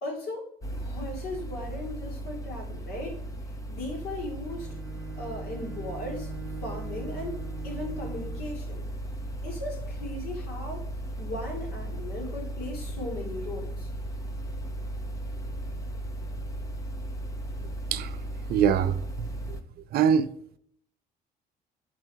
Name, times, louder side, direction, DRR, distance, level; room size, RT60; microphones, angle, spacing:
voice 1, 0.0-0.5 0.7-3.2 3.7-4.7 5.2-6.3 6.6-7.4 7.6-8.9 9.4-10.9 11.2-13.9, left 2 dB, 70° left, 2.4 m, -37 dB
sound 1, 0.6-19.6, right 1 dB, 20° left, 0.7 m, -36 dB
Bowed string instrument, 4.5-8.6, right 6 dB, ahead, 1.1 m, -43 dB
voice 2, 18.5-19.6 19.9-20.3, right 8 dB, 65° right, 0.5 m, -24 dB
6.0 x 4.6 x 4.5 m
cardioid pair, 110°, 17 cm